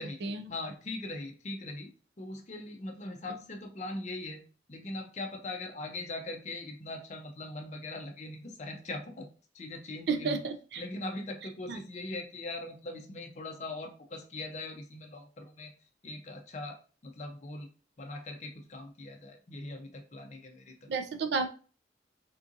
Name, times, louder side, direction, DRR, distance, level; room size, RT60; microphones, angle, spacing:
voice 1, 0.5-1.9 2.2-4.4 4.7-9.3 9.5-10.4 10.8-15.7 16.0-16.8 17.0-17.7 18.0-20.9, left 2 dB, 40° left, 3 dB, 0.5 m, -40 dB
voice 2, 10.1-10.8 11.7-11.8 20.9-21.5, right 4 dB, 60° right, 7 dB, 0.4 m, -32 dB
3.7 x 2.6 x 2.5 m, 0.37 s
head